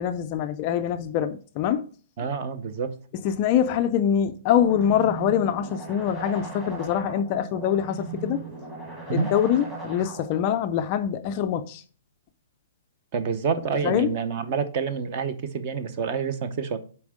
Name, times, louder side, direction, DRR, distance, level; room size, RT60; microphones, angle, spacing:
voice 1, 0.0-1.9 3.2-8.4 9.1-11.8 13.8-14.1, left 9 dB, 25° left, 0.3 m, -24 dB
voice 2, 2.2-2.9 9.1-9.3 13.1-16.8, right 6 dB, 25° right, 0.7 m, -28 dB
sound 1, 4.5-10.5, right 3 dB, 5° right, 1.8 m, -38 dB
7.1 x 4.4 x 4.9 m
hypercardioid pair, 175°, 0 cm